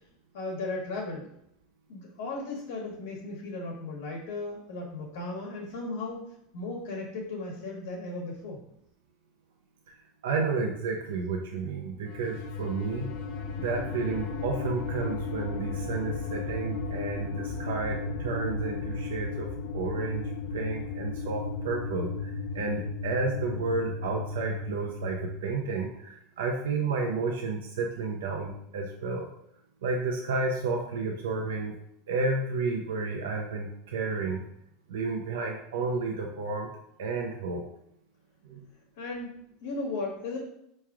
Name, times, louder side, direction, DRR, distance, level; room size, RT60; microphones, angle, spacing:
voice 1, 0.3-1.3 1.9-6.2 6.5-8.6 39.0-40.4, left 2 dB, 85° left, -1 dB, 1.2 m, -36 dB
voice 2, 10.2-13.1 13.6-19.5 19.7-20.2 20.5-29.3 29.8-31.7 32.1-34.4 34.9-36.7 37.0-37.6 38.4-38.7, right 4 dB, 90° right, 1 dB, 0.6 m, -31 dB
sound 1, 12.1-25.3, left 4 dB, 70° left, 0.7 m, -35 dB
4.6 x 3.1 x 3.6 m, 0.76 s
supercardioid pair, 120°, 0 cm